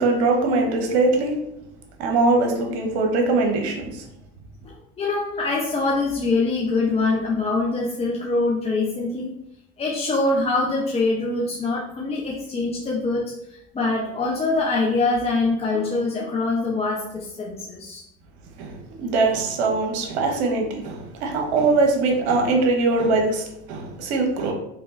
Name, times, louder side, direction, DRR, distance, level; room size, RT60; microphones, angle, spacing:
voice 1, 0.0-1.4 2.0-4.0 18.6-24.5, right 3 dB, 75° right, 2 dB, 0.9 m, -22 dB
voice 2, 4.6-9.3 9.8-18.0 23.9-24.1, left 3 dB, 20° left, -3 dB, 0.5 m, -24 dB
3.5 x 3.0 x 2.4 m, 0.80 s
hypercardioid pair, 75°, 33 cm